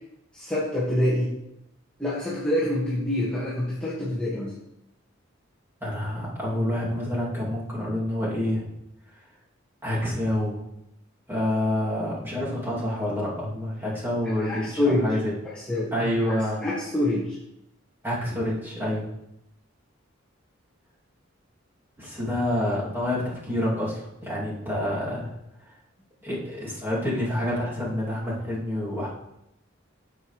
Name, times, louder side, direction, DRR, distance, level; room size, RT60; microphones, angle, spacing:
voice 1, 0.3-1.3 2.0-4.5 14.4-15.0 15.7-16.4 16.6-17.4, left 1 dB, 5° left, -10 dB, 1.8 m, -26 dB
voice 2, 5.8-8.7 9.8-10.6 11.3-15.3 15.9-16.6 18.0-19.1 22.0-25.3 26.2-29.1, left 1 dB, 10° right, -7 dB, 2.7 m, -28 dB
9.5 x 7.0 x 3.3 m, 0.84 s
head